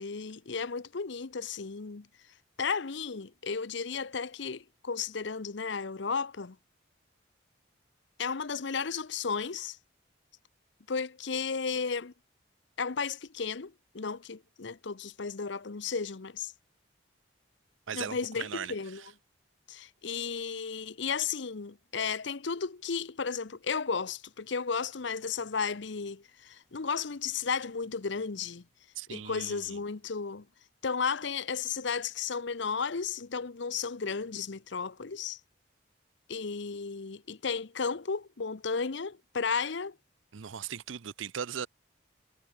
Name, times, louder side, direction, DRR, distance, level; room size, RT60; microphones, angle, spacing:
voice 1, 0.0-2.1 2.6-6.6 8.2-9.8 10.9-12.1 12.8-16.5 17.9-19.0 19.7-28.6 29.1-30.5 30.8-35.4 36.3-40.0, left 5 dB, 65° left, 0.8 m, -34 dB
voice 2, 17.9-19.1 29.0-29.8 40.3-41.7, right 7 dB, 80° right, 0.6 m, -39 dB
head